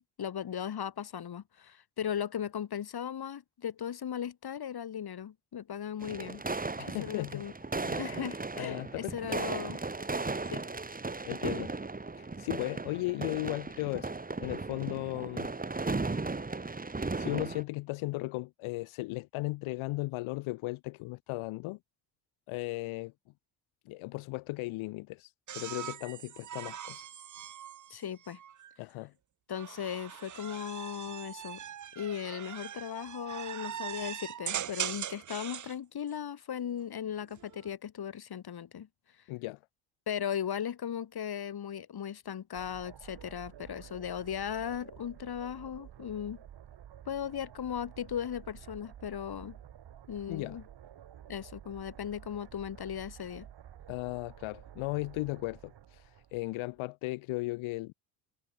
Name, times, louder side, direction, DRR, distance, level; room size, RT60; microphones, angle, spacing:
voice 1, 0.2-6.4 7.0-7.5 8.0-9.8 10.5-10.7 27.9-28.4 29.5-31.6 31.9-38.9 40.1-46.4 47.0-49.6 50.1-50.6 51.3-53.5, left 9 dB, 50° left, 4.9 m, -37 dB
sound 1, 6.0-17.6, right 3 dB, 15° right, 2.6 m, -36 dB
voice 2, 6.8-7.5 7.8-8.2 8.6-9.4 11.3-11.7 12.2-14.1 14.4-15.5 17.1-21.8 22.5-23.1 23.9-27.2 28.8-29.1 39.3-39.6 50.3-50.6 53.9-57.9, left 21 dB, 70° left, 1.7 m, -36 dB
sound 2, 25.5-28.7 29.5-35.8 37.2-37.7, right 10 dB, 35° right, 1.0 m, -41 dB
sound 3, 42.5-56.8, right 10 dB, 50° right, 4.3 m, -51 dB
hypercardioid pair, 65°, 50 cm